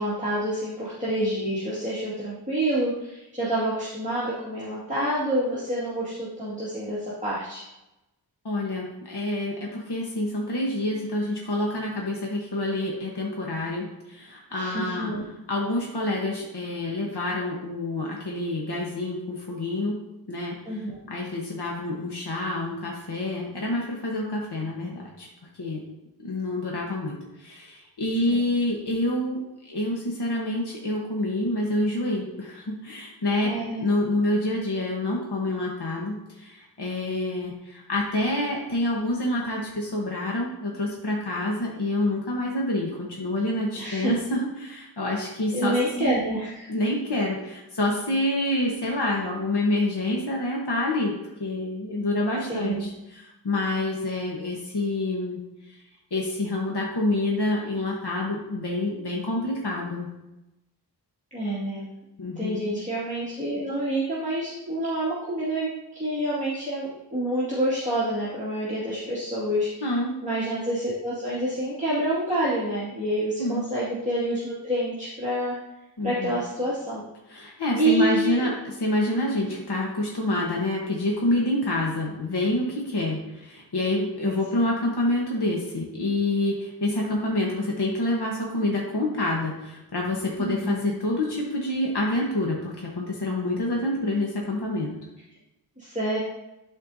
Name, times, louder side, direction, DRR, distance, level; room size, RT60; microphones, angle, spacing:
voice 1, 0.0-7.6 14.5-15.3 20.7-21.0 28.3-28.4 33.4-33.9 43.8-44.1 45.5-46.7 52.5-52.9 61.3-61.9 62.4-69.9 70.2-75.6 76.0-77.0 77.4-78.4 84.2-84.6 90.4-90.8 95.8-96.2, right 1 dB, 20° right, -10 dB, 2.1 m, -28 dB
voice 2, 8.4-15.1 15.5-20.0 20.3-20.6 21.1-25.3 25.6-25.8 26.2-29.4 29.6-46.1 46.7-51.1 51.4-55.4 56.1-60.1 62.2-62.7 69.8-70.2 73.4-73.6 76.0-76.4 77.3-94.9, left 1 dB, 75° left, -2 dB, 1.2 m, -27 dB
12.0 x 4.3 x 2.7 m, 0.93 s
wide cardioid pair, 50°, 40 cm